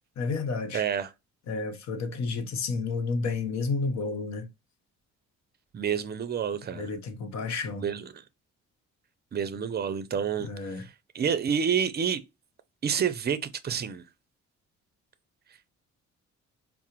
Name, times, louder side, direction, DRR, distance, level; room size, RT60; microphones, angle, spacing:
voice 1, 0.2-0.9 1.5-4.5 6.7-7.9 10.4-10.9, left 4 dB, 65° left, 0.9 m, -31 dB
voice 2, 0.7-1.1 5.7-6.9 7.8-8.2 9.3-10.5 10.8-10.9 11.1-12.2 12.8-13.4 13.6-14.0, right 7 dB, 35° right, 0.5 m, -28 dB
4.7 x 2.0 x 2.9 m
cardioid pair, 90°, 30 cm